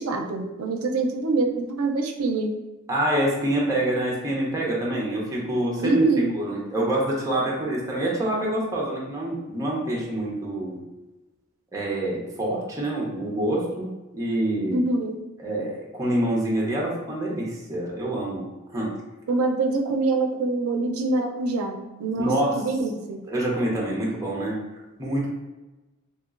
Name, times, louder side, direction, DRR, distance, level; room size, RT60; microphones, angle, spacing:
voice 1, 0.0-2.5 5.8-6.3 14.7-15.2 19.3-23.2, right 3 dB, 80° right, 3 dB, 0.4 m, -25 dB
voice 2, 2.9-6.1 6.3-10.8 11.7-13.9 14.1-14.8 15.4-18.5 18.7-18.9 22.1-22.6 23.3-24.6 25.0-25.3, right 1 dB, 15° right, -4 dB, 0.6 m, -26 dB
3.0 x 2.8 x 2.4 m, 1.1 s
head